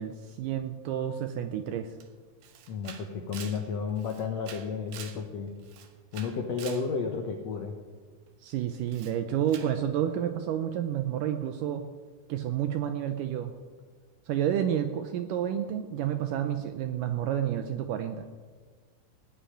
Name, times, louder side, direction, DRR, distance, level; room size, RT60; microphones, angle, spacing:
voice 1, 0.0-1.9 8.4-11.9 12.3-13.5 14.3-18.3, right 10 dB, 85° right, 8 dB, 1.9 m, -30 dB
Camera, 2.0-2.1 2.4-5.2 5.6-6.9 8.9-9.2 9.5-9.8, right 8 dB, 65° right, 2.1 m, -46 dB
voice 2, 2.7-5.5 6.1-7.7, left 5 dB, 85° left, 3 dB, 1.4 m, -32 dB
16.5 x 5.8 x 9.9 m, 1.5 s
omnidirectional pair, 4.7 m